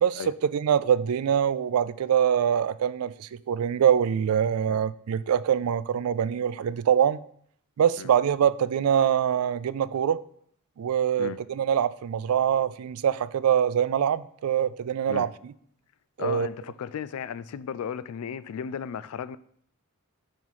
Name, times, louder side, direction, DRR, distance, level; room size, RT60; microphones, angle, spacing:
voice 1, 0.5-7.2 7.8-10.2 10.8-15.3 16.2-16.5, right 8 dB, 85° right, 0.3 m, -24 dB
voice 2, 16.2-19.4, left 7 dB, 75° left, 0.3 m, -35 dB
5.6 x 5.3 x 4.7 m
head